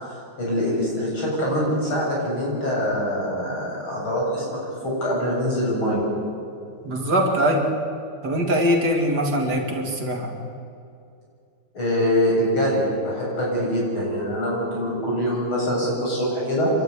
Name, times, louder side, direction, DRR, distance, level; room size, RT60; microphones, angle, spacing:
voice 1, 0.4-4.6 4.8-6.0 11.7-16.7, equal, 75° left, -4 dB, 8.5 m, -24 dB
voice 2, 6.8-7.7 8.2-10.3, equal, 50° right, 1 dB, 3.1 m, -22 dB
27.5 x 12.5 x 9.8 m, 2.4 s
omnidirectional pair, 2.3 m